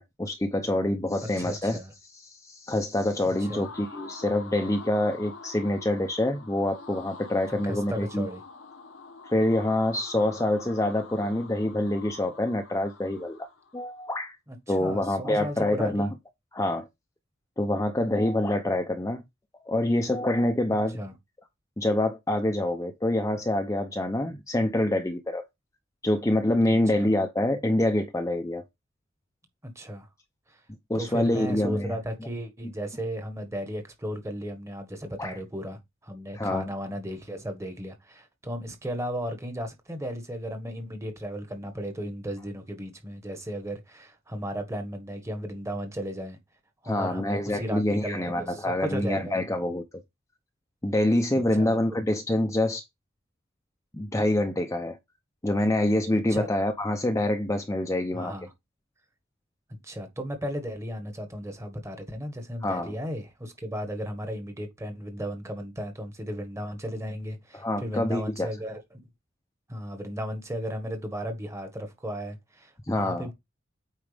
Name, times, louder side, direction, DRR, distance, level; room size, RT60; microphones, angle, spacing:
voice 1, 0.0-1.8 2.2-8.3 9.2-13.5 13.7-14.4 14.7-16.1 16.5-16.9 17.6-19.2 19.7-21.0 21.8-25.4 26.0-28.6 30.9-32.0 32.6-32.7 35.2-35.4 36.3-36.7 46.8-49.8 50.8-52.8 53.9-55.0 55.4-58.4 62.6-63.0 67.5-68.5 72.9-73.3, left 1 dB, 15° left, 0.7 m, -26 dB
voice 2, 1.4-1.9 3.5-3.7 7.6-8.4 10.2-10.3 14.5-16.1 21.0-21.1 26.7-27.1 29.6-30.1 30.5-30.6 30.9-46.4 46.8-49.4 51.6-51.8 56.3-56.5 58.1-58.5 59.8-68.8 69.7-73.3, equal, 15° right, 1.5 m, -35 dB
sound 1, 3.0-13.9, left 4 dB, 70° left, 1.1 m, -46 dB
8.7 x 4.6 x 3.4 m
head